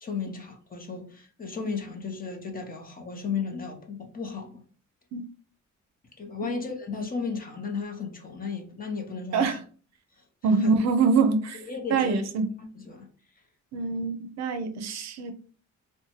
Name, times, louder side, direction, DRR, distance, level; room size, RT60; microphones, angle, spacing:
voice 1, 0.0-4.6 6.2-9.6 10.6-10.7 11.6-12.2 12.7-13.1 13.7-13.9, left 5 dB, 30° left, 0.7 m, -34 dB
voice 2, 10.4-11.6 11.9-12.5 13.7-15.3, right 4 dB, 60° right, 0.5 m, -24 dB
2.7 x 2.2 x 2.9 m
cardioid pair, 90°, 30 cm